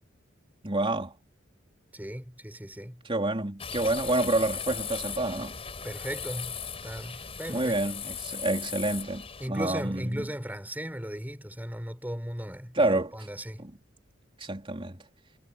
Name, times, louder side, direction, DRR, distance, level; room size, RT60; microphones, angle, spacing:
voice 1, 0.6-1.1 3.1-5.6 7.5-10.3 12.7-13.1 13.6-13.7 14.4-15.0, right 2 dB, 25° right, 4.1 m, -28 dB
voice 2, 1.9-3.0 5.8-7.8 9.4-13.6, equal, 10° right, 4.3 m, -37 dB
sound 1, 3.6-9.5, left 6 dB, 30° left, 5.1 m, -38 dB
head